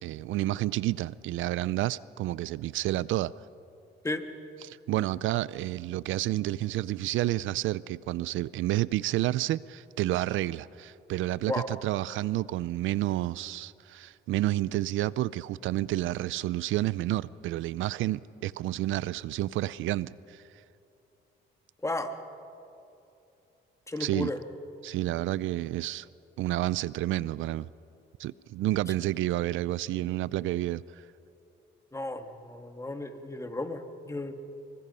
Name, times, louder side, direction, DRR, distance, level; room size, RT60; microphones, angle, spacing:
voice 1, 0.0-3.3 4.6-20.4 24.0-24.3 24.8-26.1 26.4-27.7 28.2-30.8, right 15 dB, 80° right, 0.4 m, -30 dB
voice 2, 21.8-22.1 23.9-24.4 31.9-34.3, left 2 dB, 15° left, 1.8 m, -33 dB
26.5 x 23.5 x 5.5 m
cardioid pair, 90°, 20 cm